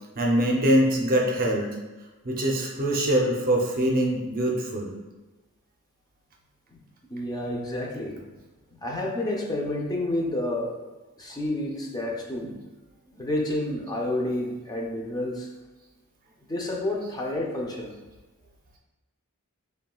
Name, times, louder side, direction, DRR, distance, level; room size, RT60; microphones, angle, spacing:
voice 1, 0.2-1.6 2.2-4.9, right 1 dB, 40° right, -1 dB, 0.6 m, -23 dB
voice 2, 7.1-8.2 8.8-10.8 11.2-12.5 13.1-15.5 16.5-17.9, left 1 dB, 20° left, -1 dB, 0.4 m, -29 dB
5.7 x 2.2 x 2.3 m, 1.2 s
head